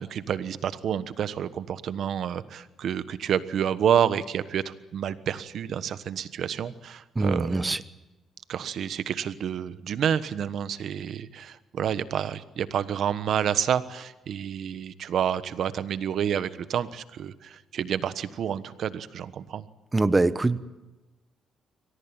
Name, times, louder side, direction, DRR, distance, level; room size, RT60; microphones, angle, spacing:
voice 1, 0.0-7.8 8.5-19.7, right 9 dB, 65° right, 13 dB, 1.2 m, -29 dB
voice 2, 7.1-7.8 19.9-20.6, right 2 dB, 20° right, 14 dB, 1.1 m, -23 dB
24.0 x 18.5 x 9.0 m, 1.1 s
cardioid pair, 90°, 0 cm